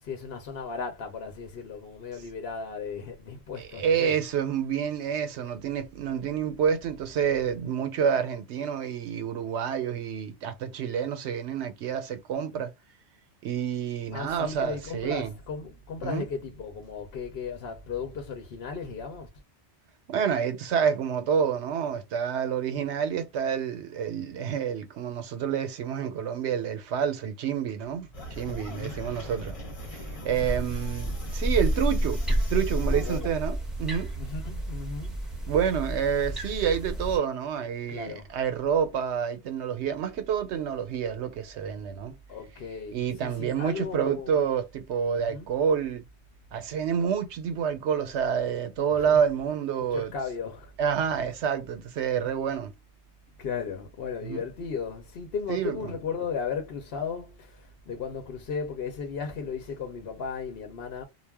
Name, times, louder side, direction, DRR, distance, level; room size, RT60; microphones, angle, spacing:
voice 1, 0.0-4.2 14.1-19.3 28.4-29.1 30.4-30.7 33.0-33.3 34.1-35.3 37.9-38.3 42.3-44.4 45.2-45.5 48.9-49.2 49.8-50.7 53.4-61.0, left 5 dB, 65° left, 0.9 m, -36 dB
voice 2, 3.6-12.7 13.4-15.3 16.0-16.2 20.1-29.6 30.2-34.1 35.5-42.1 42.9-46.0 46.5-50.1 50.8-52.7 54.2-54.4 55.5-55.8, right 7 dB, 80° right, 0.9 m, -28 dB
sound 1, 28.1-33.2, equal, 35° left, 0.8 m, -41 dB
sound 2, 30.3-37.2, equal, ahead, 0.8 m, -30 dB
2.4 x 2.1 x 3.3 m
omnidirectional pair, 1.2 m